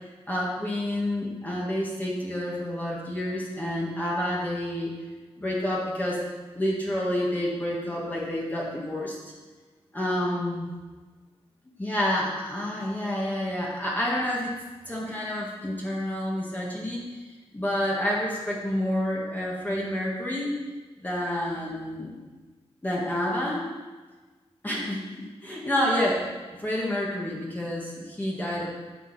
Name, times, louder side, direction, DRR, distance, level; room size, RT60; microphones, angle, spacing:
voice 1, 0.3-4.9 5.4-6.2 6.5-9.2 9.9-10.7 11.8-14.5 14.9-17.0 17.5-20.6 21.0-22.2 22.8-23.7 24.6-26.3 26.6-28.7, left 1 dB, 15° left, -5 dB, 1.7 m, -29 dB
11.0 x 7.2 x 4.2 m, 1.3 s
wide cardioid pair, 150°, 11 cm